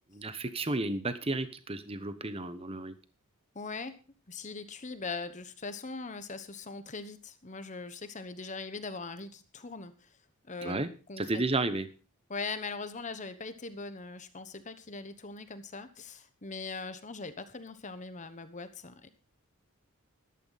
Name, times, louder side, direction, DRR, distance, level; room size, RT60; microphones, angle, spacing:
voice 1, 0.1-2.9 10.6-10.9 11.2-11.9, right 2 dB, 25° right, 12 dB, 1.0 m, -32 dB
voice 2, 3.5-3.9 4.3-10.2 10.5-11.4 12.3-19.1, left 4 dB, 35° left, 11 dB, 1.1 m, -41 dB
14.0 x 12.5 x 4.1 m, 0.34 s
head